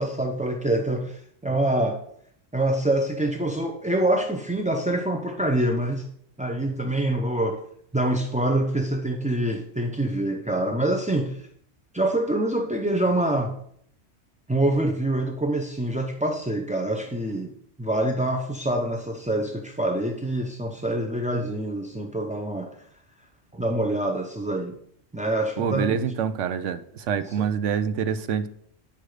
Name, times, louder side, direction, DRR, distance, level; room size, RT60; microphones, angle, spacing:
voice 1, 0.0-2.0 2.5-6.1 6.4-7.6 7.9-11.4 11.9-13.6 14.5-17.5 17.8-22.7 23.5-24.8 25.1-26.0 27.2-27.4, right 1 dB, 10° right, 0.4 m, -25 dB
voice 2, 25.6-26.8 27.1-28.5, right 7 dB, 70° right, 1.0 m, -25 dB
8.6 x 6.3 x 4.9 m
omnidirectional pair, 1.3 m